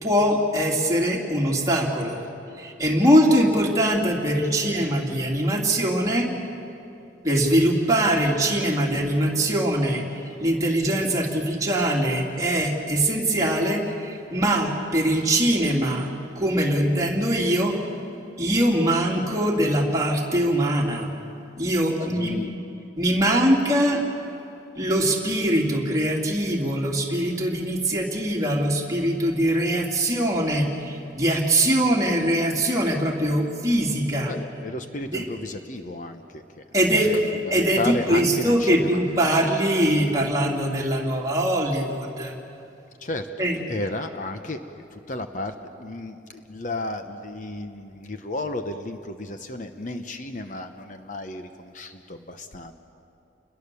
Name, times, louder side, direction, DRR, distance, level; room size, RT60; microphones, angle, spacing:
voice 1, 0.0-2.2 2.6-6.3 7.2-16.1 16.4-17.8 18.4-21.1 21.6-22.4 23.0-24.0 24.8-34.3 35.1-35.3 36.7-42.3 43.4-43.6, right 1 dB, 20° right, -2 dB, 2.8 m, -22 dB
voice 2, 22.1-22.6 34.2-36.6 37.1-37.2 37.4-39.0 43.0-44.6 44.9-52.7, left 2 dB, 40° left, 7 dB, 0.9 m, -33 dB
29.5 x 21.5 x 6.9 m, 2.8 s
head